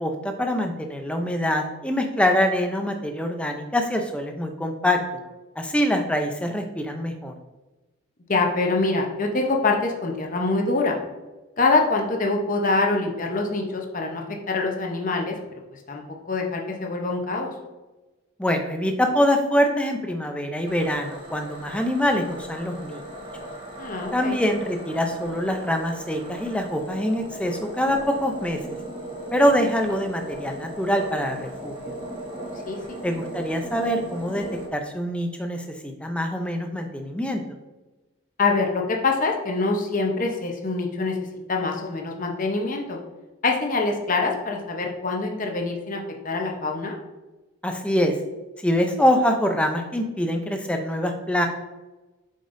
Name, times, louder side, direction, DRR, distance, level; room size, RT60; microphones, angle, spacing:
voice 1, 0.0-5.0 5.6-7.3 18.4-23.0 24.1-28.6 29.3-31.7 33.0-34.4 34.7-37.4 47.6-48.1 48.6-51.5, equal, 5° left, 4 dB, 0.5 m, -24 dB
voice 2, 8.3-11.0 11.6-15.4 15.9-17.5 23.8-24.4 32.7-33.0 38.4-41.1 41.5-43.0 43.4-47.0, left 3 dB, 40° left, 2 dB, 0.8 m, -25 dB
sound 1, 20.7-34.7, right 1 dB, 20° right, 1.3 m, -37 dB
7.5 x 5.2 x 2.6 m, 1.1 s
head